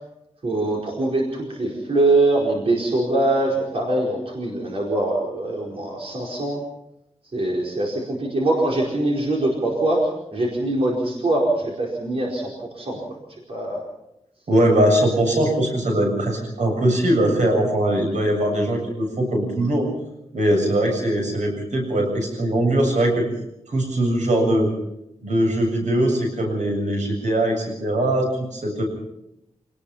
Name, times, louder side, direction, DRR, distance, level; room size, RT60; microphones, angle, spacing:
voice 1, 0.4-6.6 7.3-12.5 12.8-13.0 13.5-13.8, right 2 dB, 55° right, -2 dB, 4.8 m, -23 dB
voice 2, 14.5-19.9 20.3-23.3 23.7-24.7 25.2-28.8, right 1 dB, 85° right, 2 dB, 7.5 m, -21 dB
26.5 x 19.0 x 5.7 m, 0.84 s
wide cardioid pair, 160°, 12 cm